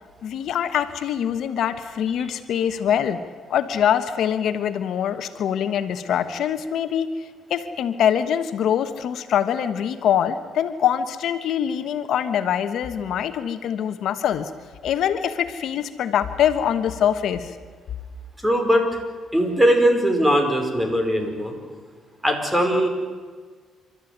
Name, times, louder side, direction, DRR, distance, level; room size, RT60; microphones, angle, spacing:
voice 1, 0.2-3.2 3.5-7.1 7.5-14.5 14.8-17.5, left 9 dB, 75° left, 10 dB, 1.2 m, -24 dB
voice 2, 18.4-18.9 19.3-21.5 22.2-22.9, equal, 10° right, 4 dB, 5.1 m, -20 dB
28.5 x 13.5 x 9.5 m, 1.5 s
cardioid pair, 90°, 0 cm